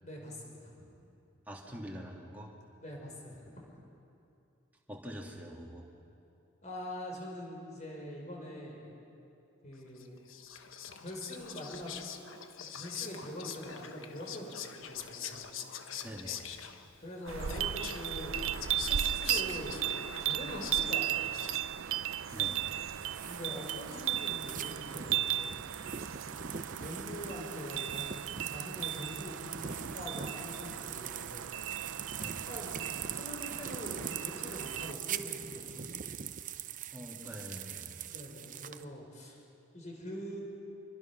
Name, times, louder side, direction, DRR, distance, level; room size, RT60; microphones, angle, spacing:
voice 1, 0.0-0.9 2.8-3.7 6.6-9.0 9.6-10.2 11.0-11.9 12.6-15.5 17.0-19.9 20.2-21.4 23.2-25.5 26.7-28.1 28.4-31.5 32.5-32.7 33.1-36.0 38.1-39.4 39.7-40.4, equal, 35° left, 0 dB, 5.2 m, -44 dB
voice 2, 1.5-2.5 4.9-5.9 16.0-16.5 22.3-22.7 32.2-32.5 36.9-38.0, equal, 10° right, -2 dB, 2.5 m, -45 dB
Whispering, 10.0-21.9, left 8 dB, 75° left, 1.3 m, -44 dB
sound 1, 17.3-34.9, right 11 dB, 75° right, 0.5 m, -36 dB
sound 2, 22.3-38.8, right 8 dB, 40° right, 0.6 m, -42 dB
26.0 x 22.5 x 6.1 m, 2.6 s
head